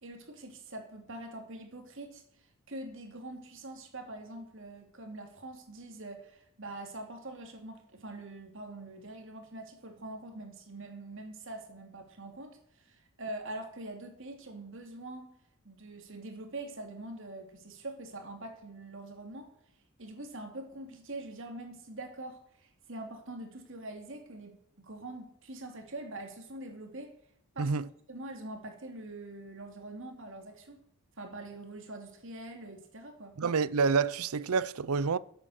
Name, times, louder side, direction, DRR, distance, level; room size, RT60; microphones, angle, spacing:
voice 1, 0.0-15.4 15.6-19.5 20.0-27.1 27.5-27.7 28.1-30.8 31.2-33.4, right 2 dB, 60° right, 2.8 m, -44 dB
voice 2, 33.4-35.2, right 5 dB, 80° right, 0.6 m, -28 dB
14.0 x 8.2 x 6.5 m
head